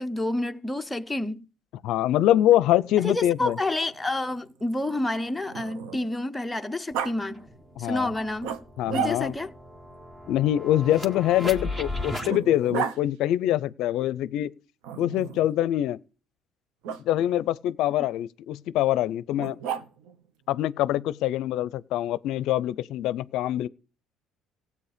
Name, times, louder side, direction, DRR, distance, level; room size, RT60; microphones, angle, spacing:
voice 1, 0.0-1.5 3.0-7.5 7.8-8.6 8.9-9.5, left 1 dB, 10° left, 0.7 m, -29 dB
voice 2, 1.8-3.6 7.8-8.1 8.8-9.3 10.3-14.5 15.0-16.0 17.0-19.6 20.5-23.7, left 13 dB, 70° left, 0.5 m, -24 dB
Growling, 2.8-6.2 6.9-7.1 8.4-9.5 10.9-13.0 14.8-15.5 16.8-17.0 19.4-20.2, right 8 dB, 80° right, 1.1 m, -35 dB
sound 1, 6.9-7.0 7.3-12.3, left 1 dB, 15° right, 1.6 m, -37 dB
16.0 x 8.4 x 5.1 m
cardioid pair, 110°, 0 cm